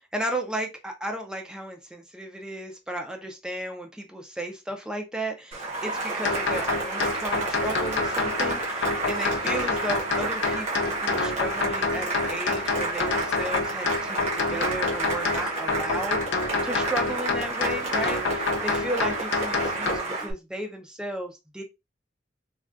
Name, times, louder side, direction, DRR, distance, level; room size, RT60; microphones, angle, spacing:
voice 1, 0.0-21.6, right 1 dB, 5° right, 3 dB, 0.5 m, -34 dB
Cheering / Applause, 5.5-20.3, right 3 dB, 35° right, 1.1 m, -31 dB
sound 1, 6.2-20.0, left 3 dB, 80° left, 0.5 m, -28 dB
3.4 x 2.3 x 2.5 m, 0.24 s
head